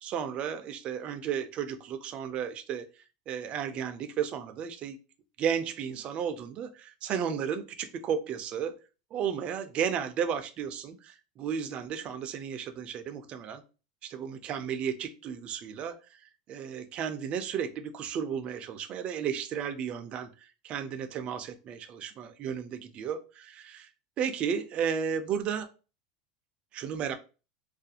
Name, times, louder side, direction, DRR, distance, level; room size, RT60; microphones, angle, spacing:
voice 1, 0.0-2.9 3.3-5.0 5.4-8.8 9.1-13.6 14.0-16.2 16.5-23.2 23.6-23.9 24.2-25.7 26.7-27.2, right 7 dB, 30° right, 8 dB, 0.3 m, -33 dB
2.4 x 2.3 x 2.6 m, 0.33 s
supercardioid pair, 155°, 4 cm